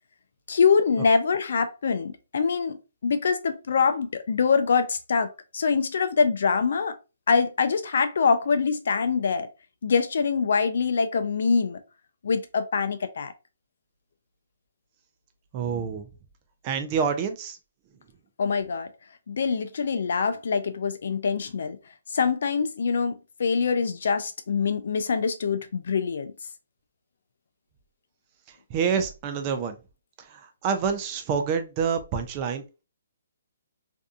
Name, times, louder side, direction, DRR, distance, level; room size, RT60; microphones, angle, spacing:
voice 1, 0.5-2.8 3.0-5.3 5.5-6.9 7.3-9.5 9.8-11.8 12.2-13.3 18.4-18.9 19.3-21.8 22.1-23.1 23.4-26.3, left 5 dB, 65° left, 0.4 m, -24 dB
voice 2, 15.5-16.1 16.6-17.6 28.7-29.8 30.3-32.6, right 6 dB, 25° right, 0.4 m, -27 dB
2.6 x 2.3 x 2.5 m
hypercardioid pair, 155°, 0 cm